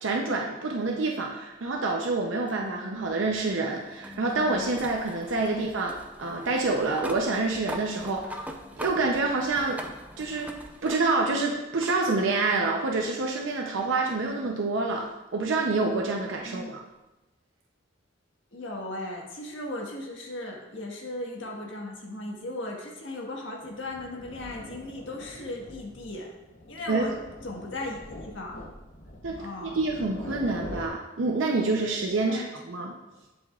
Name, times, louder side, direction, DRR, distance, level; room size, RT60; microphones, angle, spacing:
voice 1, 0.0-5.9 6.2-9.8 10.2-10.5 10.8-16.8 26.9-27.1 29.2-32.9, right 3 dB, 90° right, 0 dB, 0.7 m, -27 dB
sound 1, 2.5-11.4 11.8-12.0 13.3-13.4 16.3-16.4, equal, 10° right, 0.5 m, -42 dB
voice 2, 18.5-26.3 26.7-27.1 27.4-28.6 29.3-29.8 32.2-32.5, left 1 dB, 75° left, -1 dB, 1.5 m, -37 dB
sound 2, 23.6-30.9, left 1 dB, 45° left, 0.8 m, -43 dB
11.0 x 5.2 x 2.4 m, 1.1 s
head